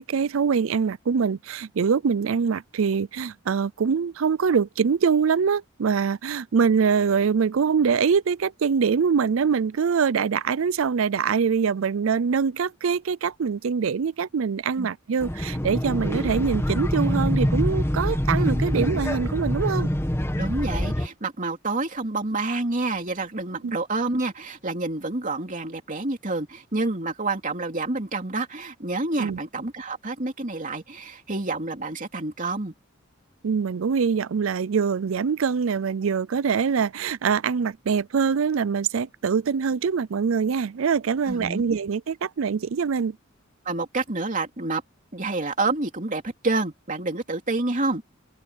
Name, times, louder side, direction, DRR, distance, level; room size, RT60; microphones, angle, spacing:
voice 1, 0.0-19.9 23.6-23.7 29.2-29.4 33.4-43.2, right 6 dB, 85° right, 0.5 m, -24 dB
sound 1, 15.2-21.1, equal, 15° left, 1.3 m, -25 dB
voice 2, 18.5-18.9 20.4-32.7 41.3-41.6 43.6-44.8 45.1-48.0, right 2 dB, 40° right, 2.9 m, -28 dB
open air
head